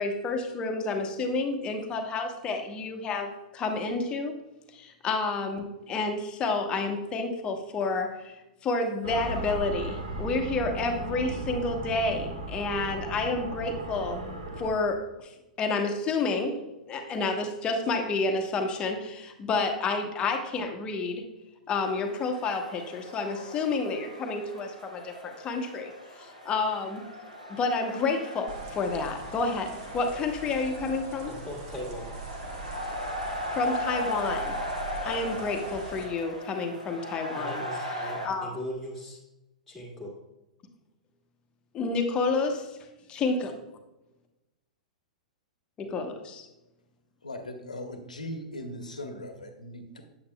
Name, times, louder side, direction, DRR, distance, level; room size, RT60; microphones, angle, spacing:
voice 1, 0.0-4.3 4.7-8.4 8.6-15.3 15.6-21.2 21.7-27.0 27.5-31.3 33.5-34.6 35.0-38.5 41.7-42.8 43.1-43.5 45.8-46.5, left 3 dB, 25° left, 4 dB, 1.0 m, -30 dB
sound 1, 9.0-14.7, right 2 dB, 65° right, 1.5 m, -36 dB
sound 2, 21.8-38.3, equal, 85° right, 1.5 m, -38 dB
sound 3, 28.5-36.1, right 3 dB, 45° right, 1.2 m, -43 dB
voice 2, 31.3-32.2 37.3-39.2 39.7-40.1, equal, ahead, -3 dB, 1.8 m, -39 dB
voice 3, 47.2-50.0, left 1 dB, 75° left, 6 dB, 1.0 m, -39 dB
8.5 x 7.8 x 2.3 m, 0.99 s
figure-of-eight pair, 100°, 4 cm